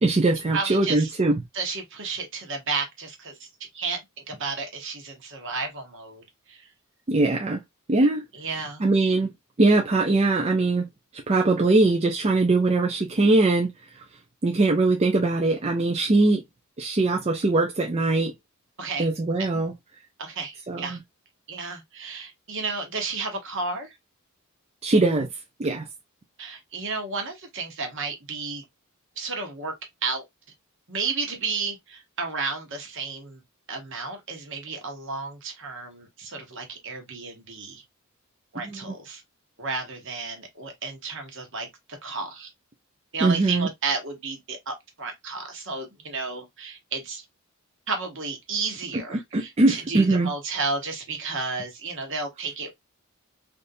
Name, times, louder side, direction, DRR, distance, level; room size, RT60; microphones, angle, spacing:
voice 1, 0.0-1.4 7.1-7.6 7.9-8.2 8.8-9.3 9.6-10.8 11.3-13.7 14.4-16.4 16.8-18.3 19.0-19.7 20.7-21.0 24.8-25.3 25.6-25.9 38.6-38.9 43.2-43.7 49.1-50.3, right 2 dB, 30° right, 0.5 m, -21 dB
voice 2, 0.5-1.1 1.5-3.5 3.7-4.0 4.3-6.6 8.3-8.8 18.8-19.1 20.2-21.0 21.5-23.9 26.4-28.6 29.2-29.7 30.0-30.2 30.9-33.4 33.7-37.8 38.5-39.2 39.6-41.7 42.0-42.5 43.1-47.2 47.9-52.7, right 4 dB, 60° right, 1.2 m, -32 dB
3.5 x 2.7 x 2.6 m
head